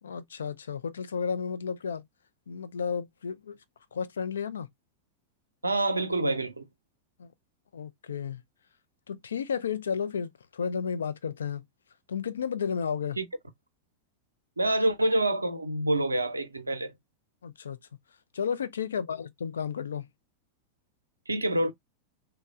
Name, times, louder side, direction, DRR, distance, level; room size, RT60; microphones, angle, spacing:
voice 1, 0.0-2.0 2.5-3.6 3.9-4.7 7.2-7.3 7.7-8.4 9.1-11.6 12.1-13.2 17.4-17.8 18.3-20.1, left 6 dB, 70° left, 0.4 m, -32 dB
voice 2, 5.6-6.6 13.2-13.3 14.6-16.9 21.3-21.7, right 1 dB, 80° right, 0.5 m, -27 dB
3.0 x 2.1 x 3.5 m
figure-of-eight pair, 90°, 0 cm